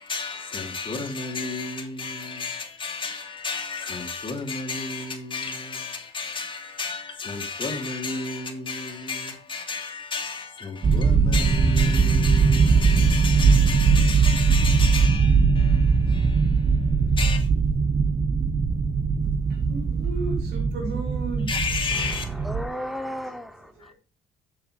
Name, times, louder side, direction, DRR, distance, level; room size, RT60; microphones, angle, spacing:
voice 1, 0.0-17.5 21.5-22.4 23.8-23.9, left 4 dB, 30° left, 2.6 m, -32 dB
sound 1, 10.8-22.7, right 5 dB, 35° right, 1.7 m, -20 dB
voice 2, 19.7-21.5 22.9-23.2, right 2 dB, 80° right, 5.4 m, -34 dB
voice 3, 21.9-23.9, equal, ahead, 0.9 m, -35 dB
7.5 x 7.0 x 4.9 m
cardioid pair, 110°, 17 cm